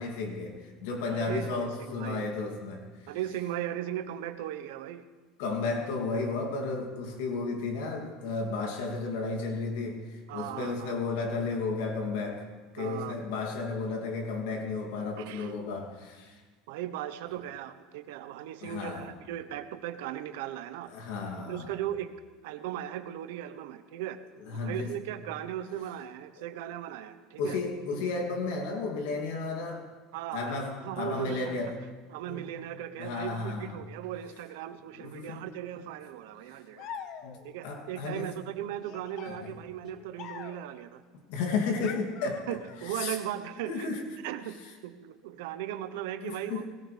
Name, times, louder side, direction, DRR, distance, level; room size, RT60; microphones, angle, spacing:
voice 1, 0.0-3.1 5.4-12.5 12.7-16.4 18.6-19.1 20.9-21.7 24.5-24.9 26.4-26.5 27.4-29.8 30.3-31.7 32.2-32.4 33.0-33.8 35.0-35.4 37.2-38.3 39.3-39.5 41.3-42.4 42.8-43.2 43.7-44.0 46.2-46.7, left 4 dB, 80° left, 2 dB, 2.7 m, -33 dB
voice 2, 1.1-1.7 1.9-2.2 3.1-5.1 10.3-10.9 12.8-13.2 15.2-15.5 16.7-20.9 21.4-22.1 22.4-24.2 24.6-27.6 30.1-31.6 32.1-36.9 37.4-41.0 42.5-43.9 44.2-46.7, right 12 dB, 80° right, 10 dB, 1.0 m, -37 dB
sound 1, 36.8-37.6 38.8-40.8 41.8-42.9, left 8 dB, 50° left, 0.9 m, -44 dB
20.0 x 17.0 x 3.4 m, 1.4 s
supercardioid pair, 145°, 0 cm